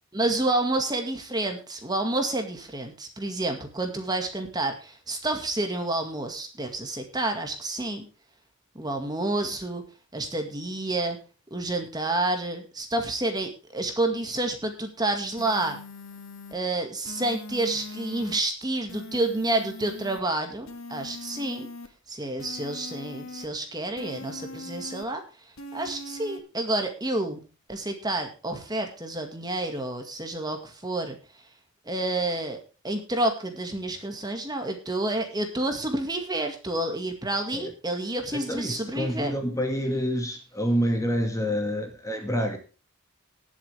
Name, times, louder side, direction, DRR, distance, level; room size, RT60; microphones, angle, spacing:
voice 1, 0.1-8.1 8.8-9.8 10.1-11.2 11.5-15.8 16.5-21.7 22.1-25.2 25.7-27.4 27.7-31.2 31.9-32.6 32.8-39.3, right 2 dB, 20° right, 5 dB, 2.0 m, -29 dB
sound 1, 15.4-16.5 17.0-18.4 18.9-20.2 20.7-21.9 22.4-23.5 24.0-25.1 25.6-26.4, left 2 dB, 75° left, 2.2 m, -41 dB
voice 2, 38.3-42.6, equal, 15° left, 4 dB, 2.1 m, -27 dB
19.5 x 7.4 x 3.5 m, 0.34 s
head